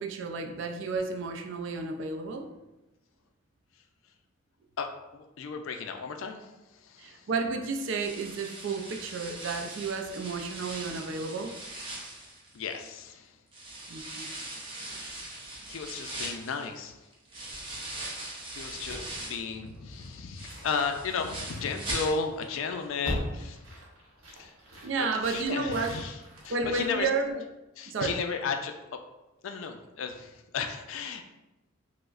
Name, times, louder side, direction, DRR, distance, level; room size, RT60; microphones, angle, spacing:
voice 1, 0.0-2.5 7.0-11.5 13.9-14.3 14.8-15.0 24.8-25.9 26.5-27.4 27.9-28.2, right 4 dB, 65° right, 4 dB, 0.4 m, -32 dB
voice 2, 4.8-7.3 12.5-13.3 15.7-16.9 18.6-23.6 24.4-24.5 25.0-26.2 26.4-27.1 27.8-28.7 29.4-31.2, left 5 dB, 75° left, 6 dB, 0.4 m, -34 dB
sound 1, 7.8-13.0 13.5-19.5 19.9-22.6 22.8-22.9 23.4-23.5, right 1 dB, 25° right, 0.6 m, -40 dB
sound 2, 18.9-27.3, equal, 85° right, 0.8 m, -42 dB
4.8 x 2.0 x 2.4 m, 1.0 s
head